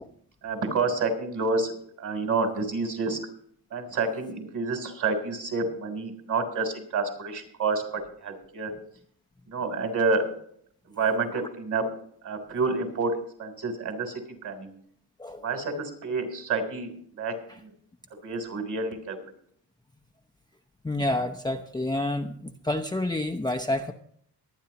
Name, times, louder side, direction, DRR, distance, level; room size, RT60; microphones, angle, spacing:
voice 1, 0.4-3.2 3.7-8.7 9.5-10.2 10.9-11.8 12.2-14.7 15.4-17.7 18.2-19.2, right 3 dB, 50° right, 4 dB, 3.6 m, -29 dB
voice 2, 20.8-23.9, left 1 dB, 10° left, 4 dB, 0.8 m, -29 dB
23.0 x 9.3 x 2.9 m, 0.63 s
cardioid pair, 105°, 39 cm